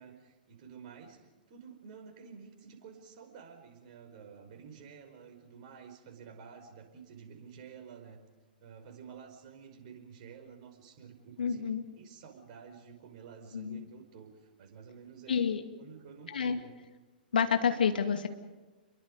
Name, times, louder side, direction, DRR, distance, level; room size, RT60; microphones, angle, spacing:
voice 1, 0.0-8.2 8.6-15.4 15.8-16.7, right 6 dB, 45° right, 4 dB, 5.1 m, -51 dB
voice 2, 11.4-11.8 13.5-13.8 15.3-15.6 16.3-16.6 17.3-18.3, left 7 dB, 70° left, 7 dB, 2.3 m, -29 dB
29.5 x 23.0 x 5.3 m, 1.2 s
figure-of-eight pair, 110°, 5 cm